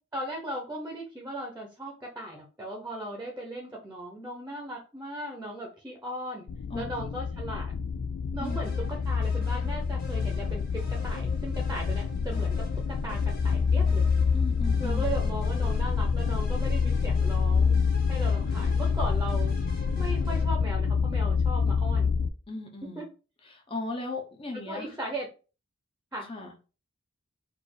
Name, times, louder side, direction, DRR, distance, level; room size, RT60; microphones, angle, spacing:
voice 1, 0.1-6.5 6.7-7.7 8.3-13.2 13.4-14.1 14.8-17.8 18.1-19.5 20.0-22.1 23.0-23.1 24.5-25.3 26.1-26.3, right 1 dB, 10° right, 0 dB, 0.8 m, -37 dB
sound 1, 6.5-22.3, left 5 dB, 85° left, 0.4 m, -27 dB
sound 2, 8.4-20.4, left 2 dB, 40° left, 1.4 m, -48 dB
voice 2, 8.4-8.9 14.3-15.2 22.5-23.0 23.5-24.9 26.3-26.5, left 2 dB, 25° left, 2 dB, 0.8 m, -37 dB
4.3 x 2.6 x 4.7 m, 0.34 s
head